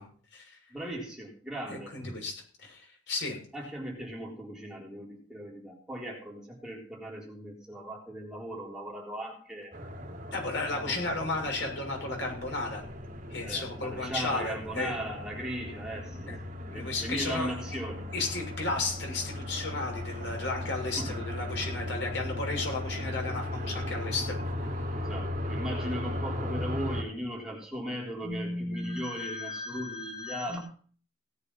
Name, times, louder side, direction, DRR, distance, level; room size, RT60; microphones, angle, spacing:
voice 1, 0.0-0.6 1.7-3.4 10.3-12.8 13.3-14.9 16.3-16.4 16.7-17.5 18.1-24.4 24.7-24.8, left 3 dB, 75° left, 1 dB, 6.8 m, -34 dB
voice 2, 0.7-2.1 3.5-9.8 10.6-11.0 13.4-16.4 16.7-18.1 21.0-21.2 24.9-30.6, equal, 5° right, -2 dB, 4.0 m, -37 dB
sound 1, 9.7-27.0, left 1 dB, 40° right, 2.8 m, -37 dB
18.0 x 8.2 x 5.8 m, 0.43 s
head